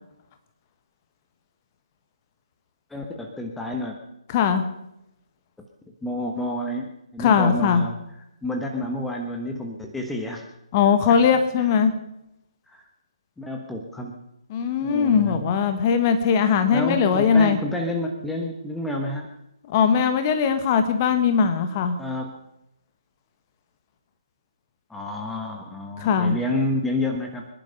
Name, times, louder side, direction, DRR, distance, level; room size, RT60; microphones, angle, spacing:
voice 1, 2.9-4.0 6.0-8.0 8.4-10.4 11.1-11.2 11.8-11.9 12.7-12.8 13.4-14.1 14.8-15.4 16.7-19.3 22.0-22.3 24.9-27.5, left 1 dB, 5° left, 2 dB, 1.2 m, -29 dB
voice 2, 4.3-4.6 7.2-7.8 10.7-11.9 14.5-17.6 19.7-22.0 26.0-26.4, left 6 dB, 25° left, 8 dB, 1.4 m, -20 dB
24.5 x 10.5 x 5.4 m, 0.83 s
figure-of-eight pair, 140°, 3 cm